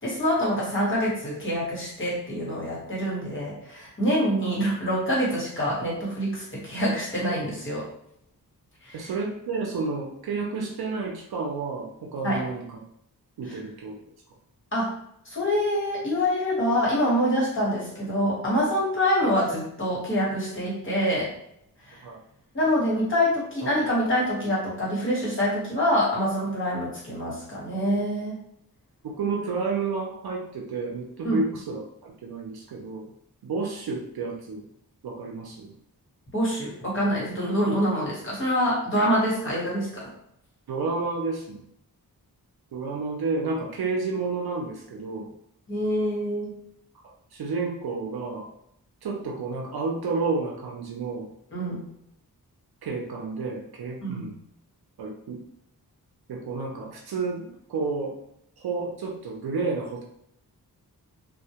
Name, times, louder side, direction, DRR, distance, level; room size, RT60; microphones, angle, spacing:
voice 1, 0.0-7.9 8.8-9.1 12.2-12.4 14.7-14.9 15.3-21.3 21.9-22.0 22.5-28.4 31.2-31.4 36.3-40.1 45.7-46.5 51.5-51.9 54.0-54.3, equal, 35° left, -6 dB, 1.0 m, -25 dB
voice 2, 8.9-12.8 13.4-14.1 22.0-22.2 29.0-33.1 33.4-34.6 35.0-35.7 40.7-41.6 42.7-45.3 47.0-48.5 49.0-51.3 52.8-54.3 55.0-55.4 56.3-58.2 58.6-60.0, right 4 dB, 80° right, 0 dB, 0.5 m, -31 dB
2.1 x 2.1 x 2.7 m, 0.73 s
wide cardioid pair, 130°, 37 cm